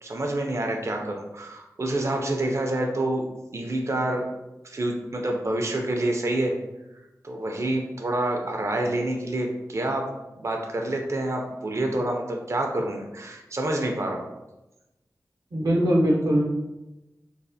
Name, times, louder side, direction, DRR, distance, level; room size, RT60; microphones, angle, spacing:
voice 1, 0.0-3.2 3.5-4.2 4.6-6.6 7.2-10.0 10.4-14.2, right 1 dB, 45° right, 2 dB, 0.4 m, -27 dB
voice 2, 15.5-16.5, equal, 80° right, -2 dB, 0.7 m, -21 dB
3.1 x 2.0 x 2.6 m, 0.96 s
wide cardioid pair, 55°, 7 cm